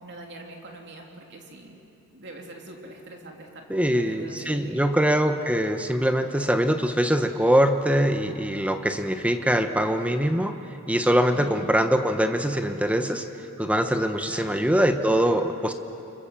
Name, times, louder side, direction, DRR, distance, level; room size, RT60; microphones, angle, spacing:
voice 1, 0.0-1.8 2.1-5.0 11.3-11.8 14.3-14.6, right 1 dB, 50° right, 1 dB, 3.1 m, -43 dB
voice 2, 3.7-10.6 10.9-13.3 13.6-15.7, equal, 5° right, 7 dB, 1.1 m, -23 dB
29.0 x 25.5 x 7.5 m, 2.9 s
head